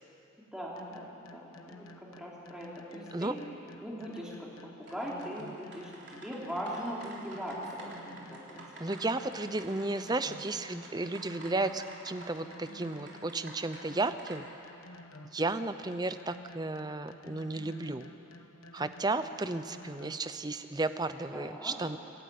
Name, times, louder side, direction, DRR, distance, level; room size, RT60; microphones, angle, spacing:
voice 1, 0.5-3.4 3.8-4.5 4.8-8.9 21.3-21.7, equal, 5° right, -5 dB, 3.4 m, -40 dB
sound 1, 0.8-20.4, left 1 dB, 90° left, 1.2 m, -52 dB
sound 2, 4.8-14.4, right 2 dB, 55° right, 3.6 m, -51 dB
voice 2, 8.8-14.5 15.3-18.1 18.7-22.0, right 2 dB, 20° right, 11 dB, 0.6 m, -33 dB
25.5 x 12.0 x 9.4 m, 2.9 s
head